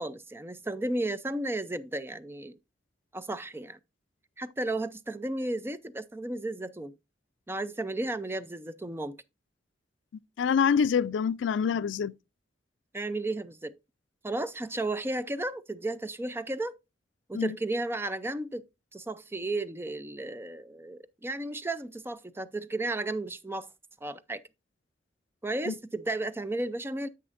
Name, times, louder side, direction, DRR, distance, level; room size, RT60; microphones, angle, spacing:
voice 1, 0.0-2.6 3.1-3.8 4.4-6.9 7.5-9.2 12.9-13.7 14.2-16.8 17.3-18.6 18.9-23.7 24.0-24.4 25.4-27.1, right 2 dB, 15° right, 0.5 m, -33 dB
voice 2, 10.4-12.1 17.3-17.6 25.7-25.8, left 6 dB, 80° left, 0.3 m, -26 dB
9.8 x 7.8 x 2.5 m
head